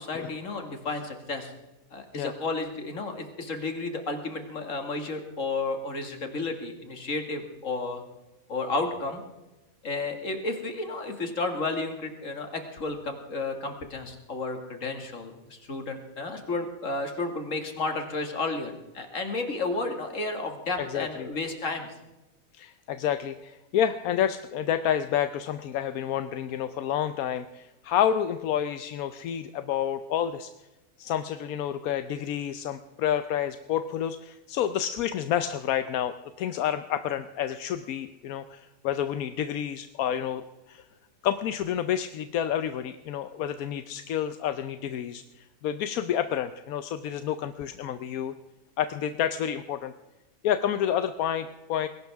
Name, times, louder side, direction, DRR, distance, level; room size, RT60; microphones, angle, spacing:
voice 1, 0.0-1.5 1.9-8.0 8.5-9.2 9.8-21.9, left 3 dB, 65° left, 5 dB, 2.4 m, -32 dB
voice 2, 20.8-21.3 22.5-30.5 31.0-40.4 40.7-40.8 41.2-48.3 48.8-49.9 50.4-51.9, left 10 dB, 85° left, 10 dB, 1.1 m, -29 dB
20.5 x 17.5 x 3.5 m, 1.0 s
omnidirectional pair, 1.5 m